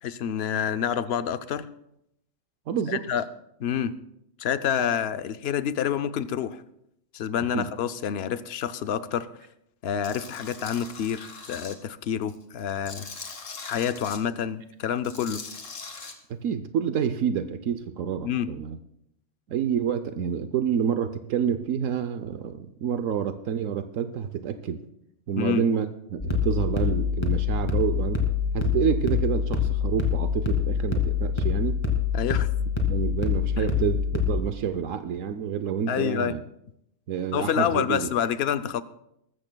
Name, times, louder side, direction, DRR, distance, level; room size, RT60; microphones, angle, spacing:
voice 1, 0.0-1.7 2.9-3.2 3.6-4.0 4.4-6.6 7.1-9.3 9.8-13.0 13.6-15.4 18.2-18.5 25.4-25.6 32.1-32.5 33.6-33.7 35.9-36.3 37.3-38.8, left 8 dB, 60° left, 12 dB, 0.8 m, -28 dB
voice 2, 2.7-3.0 7.5-7.7 16.3-18.8 19.5-24.8 25.3-28.3 28.5-31.8 32.9-36.4 37.1-38.1, right 8 dB, 80° right, 9 dB, 1.1 m, -28 dB
Tools, 10.0-11.7 12.2-14.2 15.0-16.1, left 4 dB, 75° left, 1.9 m, -41 dB
sound 1, 26.2-34.4, left 7 dB, 20° left, 2.2 m, -25 dB
20.5 x 14.0 x 2.3 m, 0.79 s
omnidirectional pair, 1.3 m